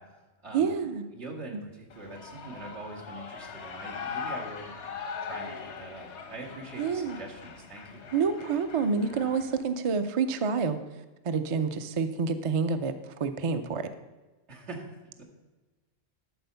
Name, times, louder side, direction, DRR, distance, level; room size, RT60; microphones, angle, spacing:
voice 1, 0.0-4.9 5.2-8.1 14.5-15.2, right 2 dB, 85° right, -2 dB, 2.3 m, -44 dB
voice 2, 0.5-1.0 6.8-7.2 8.1-10.8 11.2-12.9 13.2-13.9, right 5 dB, 40° right, 9 dB, 0.5 m, -28 dB
Shout / Cheering, 1.9-9.6, left 5 dB, 85° left, 1.3 m, -41 dB
12.5 x 4.3 x 6.8 m, 1.2 s
omnidirectional pair, 1.1 m